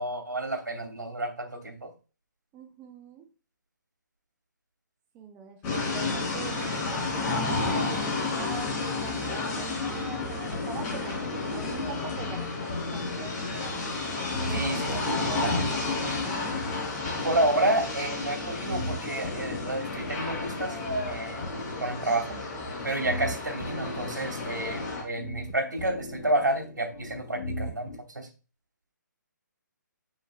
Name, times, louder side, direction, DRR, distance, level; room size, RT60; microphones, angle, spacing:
voice 1, 0.0-1.9 14.5-14.9 15.2-15.6 17.2-20.8 21.1-21.4 21.8-22.4 22.8-28.3, right 1 dB, 85° right, 4 dB, 2.9 m, -30 dB
voice 2, 2.5-3.2 5.1-13.7 14.5-16.6 23.1-23.2, right 5 dB, 20° right, 4 dB, 0.8 m, -43 dB
sound 1, 5.6-25.0, left 3 dB, 25° left, 3.9 m, -32 dB
sound 2, 10.5-28.0, left 2 dB, 55° left, 1.5 m, -39 dB
7.3 x 6.4 x 2.4 m, 0.33 s
figure-of-eight pair, 145°, 10 cm